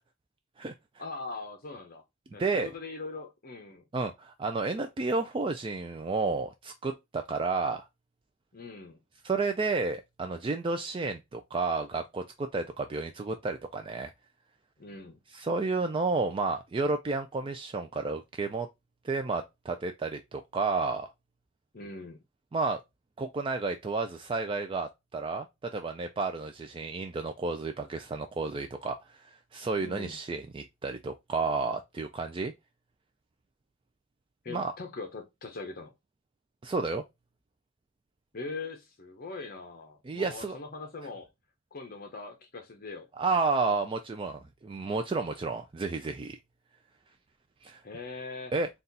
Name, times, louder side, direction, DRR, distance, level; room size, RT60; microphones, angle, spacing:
voice 1, 1.0-2.0 2.3-3.8 8.5-9.0 14.8-15.2 21.7-22.2 29.8-30.2 34.4-35.9 38.3-41.3 41.7-43.1 47.8-48.5, left 3 dB, 45° left, 0.7 m, -41 dB
voice 2, 2.4-2.7 3.9-7.9 9.2-14.1 15.3-18.7 19.0-21.1 22.5-22.8 23.2-32.5 34.5-34.7 36.6-37.0 40.0-40.6 43.2-46.4 47.6-47.8 48.5-48.7, right 3 dB, 25° right, 0.3 m, -31 dB
4.0 x 2.3 x 3.9 m
head